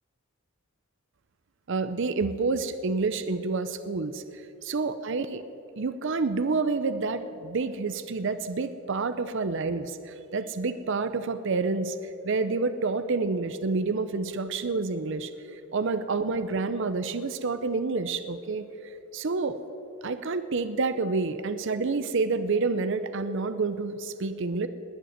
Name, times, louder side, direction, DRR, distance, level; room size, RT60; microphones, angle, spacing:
voice 1, 1.7-5.4 5.8-12.0 12.2-18.7 19.1-19.6 20.0-24.7, right 4 dB, 60° right, 11 dB, 0.6 m, -28 dB
20.0 x 7.8 x 7.9 m, 2.8 s
head